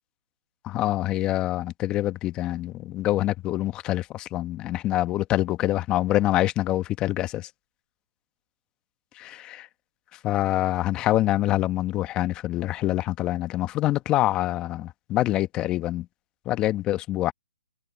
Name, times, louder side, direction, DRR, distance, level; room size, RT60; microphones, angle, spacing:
voice 1, 0.6-7.5 9.2-9.7 10.2-16.1 16.5-17.3, left 15 dB, 20° left, 1.1 m, -25 dB
hypercardioid pair, 150°, 4 cm